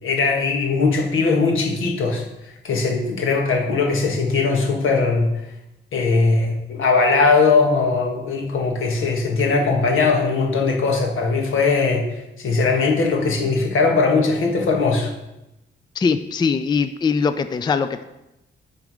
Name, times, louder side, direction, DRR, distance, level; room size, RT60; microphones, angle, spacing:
voice 1, 0.0-2.2 2.6-5.3 5.9-12.1 12.4-15.1, left 4 dB, 85° left, 1 dB, 1.6 m, -19 dB
voice 2, 16.0-18.0, left 5 dB, 20° left, 10 dB, 0.4 m, -21 dB
9.3 x 3.8 x 6.3 m, 0.92 s
wide cardioid pair, 125°, 20 cm